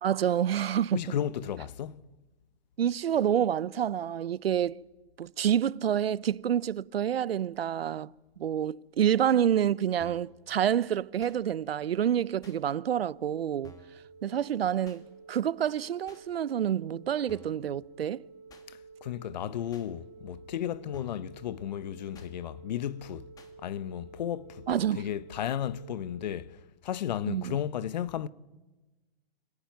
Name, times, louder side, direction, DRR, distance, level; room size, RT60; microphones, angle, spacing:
voice 1, 0.0-1.0 2.8-4.8 5.2-8.1 8.4-13.7 14.2-18.2 24.7-25.0 27.3-27.6, right 9 dB, 75° right, 0.8 m, -28 dB
voice 2, 0.9-2.0 18.7-23.3 23.6-24.7 24.9-28.3, left 10 dB, 45° left, 0.9 m, -34 dB
sound 1, 9.5-26.4, right 5 dB, 45° right, 4.3 m, -52 dB
sound 2, 10.0-10.3 11.2-11.4 12.4-12.6 13.6-14.0 14.9-15.0 16.1-16.2 17.3-17.6 18.5-18.7 19.7-19.9 20.9-21.3 22.1-22.3 23.4-23.5, left 1 dB, 10° left, 2.1 m, -53 dB
25.0 x 18.0 x 9.4 m
hypercardioid pair, 150°, 31 cm